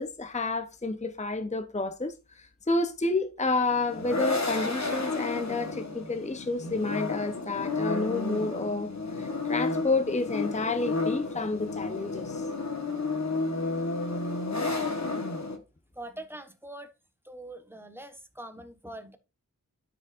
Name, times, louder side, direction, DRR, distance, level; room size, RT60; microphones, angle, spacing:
voice 1, 0.0-8.9 9.2-12.5, left 3 dB, 20° left, 0.7 m, -30 dB
sound 1, 3.6-15.6, left 3 dB, 55° left, 1.2 m, -32 dB
voice 2, 15.9-16.9 17.2-19.2, right 1 dB, 5° right, 1.1 m, -43 dB
12.5 x 5.1 x 2.4 m
wide cardioid pair, 50°, 32 cm